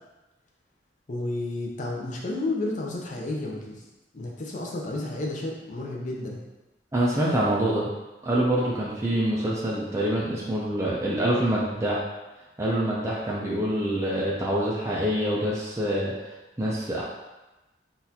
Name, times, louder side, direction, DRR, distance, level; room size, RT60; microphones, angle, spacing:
voice 1, 1.1-3.8 4.1-6.4, left 2 dB, 45° left, -2 dB, 0.6 m, -31 dB
voice 2, 6.9-7.9 8.2-12.0 12.6-16.1 16.6-17.0, right 1 dB, 15° right, -5 dB, 0.4 m, -25 dB
3.9 x 2.5 x 2.8 m, 1.1 s
head